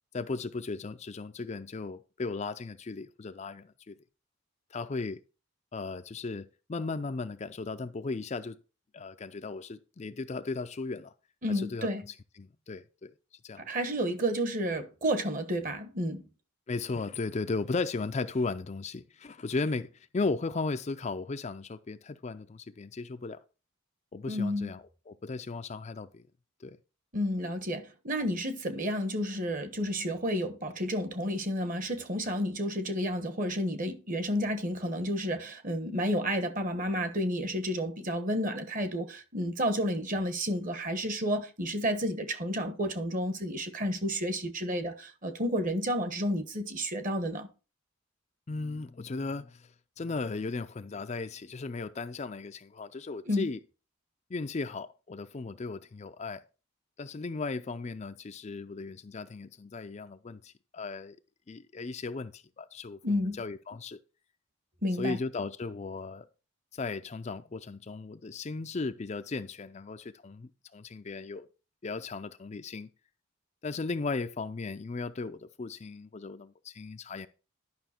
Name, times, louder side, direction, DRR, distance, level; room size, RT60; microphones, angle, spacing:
voice 1, 0.1-4.0 4.7-5.2 5.7-8.6 8.9-11.1 11.5-11.9 12.4-13.1 13.4-13.6 16.7-23.4 24.1-26.3 26.6-26.8 48.5-53.6 54.3-56.4 57.0-61.2 61.5-64.0 65.0-66.3 66.7-71.5 71.8-72.9 73.6-77.3, left 3 dB, 30° left, 0.4 m, -36 dB
voice 2, 11.4-12.0 13.6-16.2 24.3-24.7 27.1-47.5 53.3-53.5 63.0-63.4 64.8-65.2, equal, 40° right, 1.2 m, -31 dB
11.5 x 5.7 x 4.4 m
head